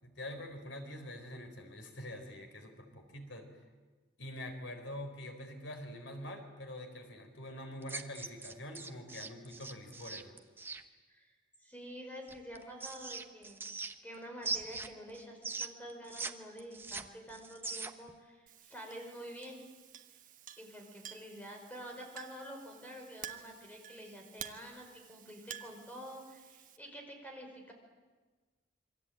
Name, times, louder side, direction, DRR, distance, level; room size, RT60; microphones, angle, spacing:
voice 1, 0.0-3.6 4.2-10.3, left 1 dB, 85° left, 5 dB, 4.1 m, -45 dB
sound 1, 7.8-10.8 12.3-14.1 14.4-16.3 16.6-18.1, right 3 dB, 10° right, 1.0 m, -41 dB
voice 2, 11.6-19.6 20.6-27.7, equal, 10° left, 2 dB, 5.3 m, -48 dB
Chink clink, 18.5-26.8, right 9 dB, 45° right, 1.3 m, -51 dB
27.5 x 24.0 x 8.9 m, 1.3 s
head